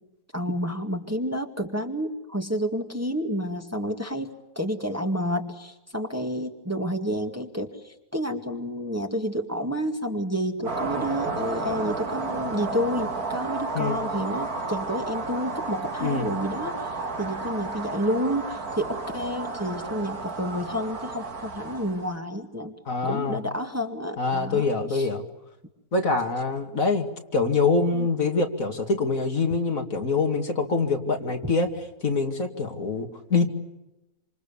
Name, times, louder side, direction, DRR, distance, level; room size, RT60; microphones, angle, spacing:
voice 1, 0.3-22.7 23.0-25.1 27.9-28.1 31.2-31.5, equal, 10° right, 4 dB, 2.1 m, -30 dB
sound 1, 10.6-22.2, right 3 dB, 80° right, 2.8 m, -32 dB
voice 2, 22.9-23.4 24.2-25.2 25.9-27.1 27.3-31.7 32.0-33.5, left 4 dB, 65° left, 4 dB, 2.8 m, -25 dB
27.0 x 27.0 x 7.1 m, 0.95 s
omnidirectional pair, 1.6 m